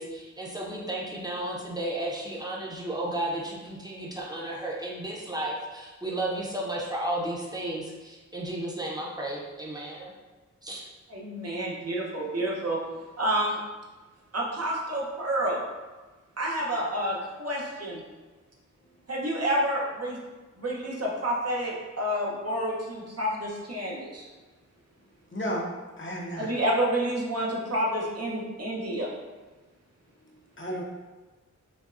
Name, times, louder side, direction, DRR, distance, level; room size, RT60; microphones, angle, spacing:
voice 1, 0.0-10.1 10.6-10.8, right 1 dB, 15° right, -3 dB, 0.7 m, -33 dB
voice 2, 11.1-12.8 13.2-13.6 14.3-15.6 16.4-18.0 19.1-20.2 20.6-24.3 26.4-29.1, right 1 dB, 55° right, -3 dB, 0.8 m, -29 dB
voice 3, 25.3-25.7 26.0-26.5 30.6-30.8, equal, 40° left, -2 dB, 0.7 m, -32 dB
5.1 x 2.2 x 2.5 m, 1.2 s
wide cardioid pair, 70°, 30 cm